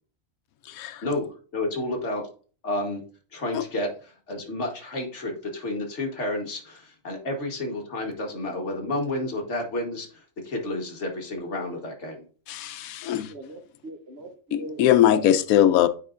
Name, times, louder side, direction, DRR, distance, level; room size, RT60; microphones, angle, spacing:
voice 1, 1.5-2.2 2.6-3.0 3.3-10.1 10.4-12.2, left 1 dB, 55° left, 1.7 m, -30 dB
voice 2, 12.5-13.3 14.5-15.9, left 11 dB, 90° left, 1.0 m, -20 dB
voice 3, 13.3-15.4, right 2 dB, 50° right, 1.1 m, -40 dB
9.2 x 5.0 x 2.5 m
omnidirectional pair, 1.4 m